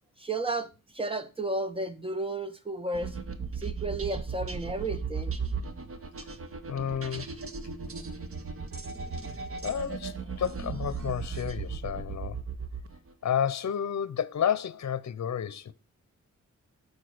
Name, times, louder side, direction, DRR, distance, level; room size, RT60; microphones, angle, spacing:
voice 1, 0.2-3.2 3.6-5.4, right 2 dB, 20° right, 1.4 m, -33 dB
sound 1, 2.9-13.1, right 5 dB, 45° right, 1.3 m, -36 dB
voice 2, 6.7-7.3 9.6-12.4 13.2-15.7, left 8 dB, 60° left, 0.8 m, -31 dB
11.0 x 6.8 x 5.1 m
wide cardioid pair, 125°, 30 cm